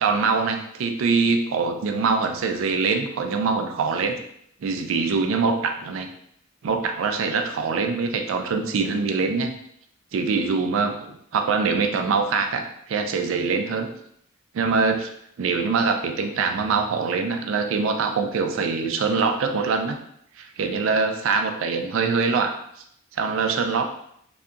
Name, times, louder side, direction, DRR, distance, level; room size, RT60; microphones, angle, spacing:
voice 1, 0.0-4.2 4.6-6.1 6.6-9.5 10.1-13.9 14.5-15.1 15.4-20.0 20.4-22.5 23.1-23.9, right 4 dB, 75° right, 5 dB, 0.3 m, -23 dB
2.7 x 2.4 x 2.3 m, 0.71 s
head